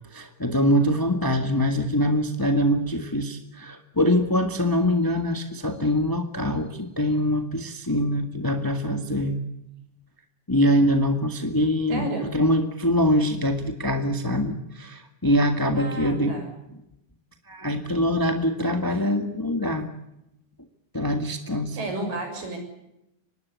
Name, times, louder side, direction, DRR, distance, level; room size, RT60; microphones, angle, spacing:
voice 1, 0.1-9.4 10.5-12.1 12.3-16.4 17.5-19.9 20.9-21.8, equal, 15° left, 6 dB, 0.8 m, -23 dB
voice 2, 11.9-12.3 15.7-16.5 21.7-22.6, right 2 dB, 85° right, 4 dB, 8.4 m, -32 dB
25.0 x 20.0 x 8.3 m, 0.87 s
omnidirectional pair, 3.8 m